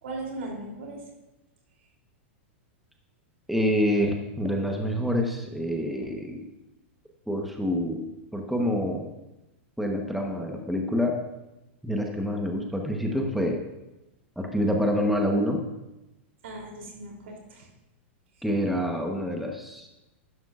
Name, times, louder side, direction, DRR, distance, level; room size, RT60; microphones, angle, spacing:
voice 1, 0.0-1.0 16.4-17.7, right 2 dB, 80° right, 0 dB, 3.2 m, -38 dB
voice 2, 3.5-6.5 7.3-8.0 8.3-9.1 9.8-11.1 11.8-13.6 14.4-15.6 18.4-19.9, equal, ahead, 1 dB, 1.1 m, -27 dB
11.0 x 11.0 x 2.5 m, 0.99 s
hypercardioid pair, 130°, 7 cm